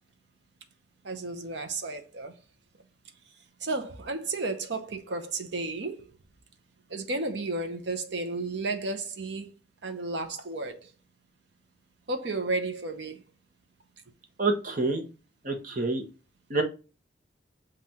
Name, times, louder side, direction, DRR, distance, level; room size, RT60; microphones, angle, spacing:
voice 1, 1.0-2.3 3.6-6.0 6.9-9.5 9.8-10.9 12.1-13.2, right 3 dB, 70° right, 0.8 m, -33 dB
voice 2, 14.4-15.0 15.4-16.0 16.5-16.6, right 3 dB, 45° right, 0.9 m, -27 dB
7.4 x 2.5 x 2.8 m
head